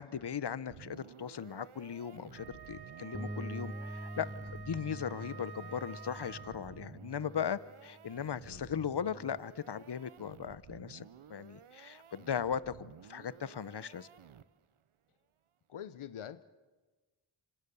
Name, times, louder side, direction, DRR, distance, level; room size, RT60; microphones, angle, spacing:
voice 1, 0.0-11.0 11.3-14.1, left 8 dB, 55° left, 17 dB, 1.0 m, -38 dB
sound 1, 0.7-14.8, right 8 dB, 80° right, 1.0 m, -54 dB
Wind instrument woodwind instrument, 2.3-6.9, right 7 dB, 50° right, 1.0 m, -50 dB
Bass guitar, 3.1-9.4, equal, 5° right, 0.8 m, -46 dB
voice 2, 15.7-16.4, left 9 dB, 90° left, 13 dB, 0.9 m, -45 dB
28.0 x 26.0 x 7.1 m, 1.3 s
cardioid pair, 40°, 49 cm